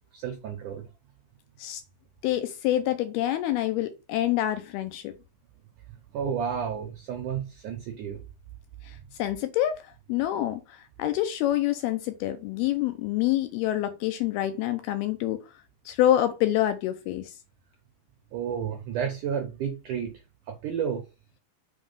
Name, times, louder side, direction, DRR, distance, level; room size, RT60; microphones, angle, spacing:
voice 1, 0.1-0.9 6.1-8.2 18.3-20.1 20.5-21.0, right 7 dB, 80° right, 1.8 m, -31 dB
voice 2, 2.2-5.1 8.8-15.4 15.9-17.3, left 13 dB, 80° left, 2.4 m, -27 dB
6.2 x 4.0 x 5.4 m
omnidirectional pair, 5.0 m